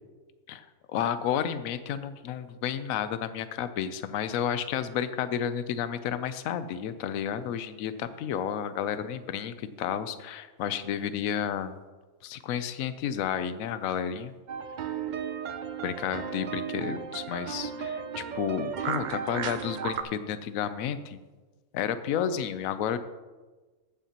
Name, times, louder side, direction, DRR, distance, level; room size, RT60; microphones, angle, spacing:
voice 1, 0.5-11.8 12.2-14.3 15.8-21.2 21.7-23.0, left 9 dB, 80° left, 12 dB, 1.0 m, -31 dB
sound 1, 14.5-20.0, right 7 dB, 75° right, 0.4 m, -34 dB
14.5 x 8.9 x 2.9 m, 1.3 s
omnidirectional pair, 1.4 m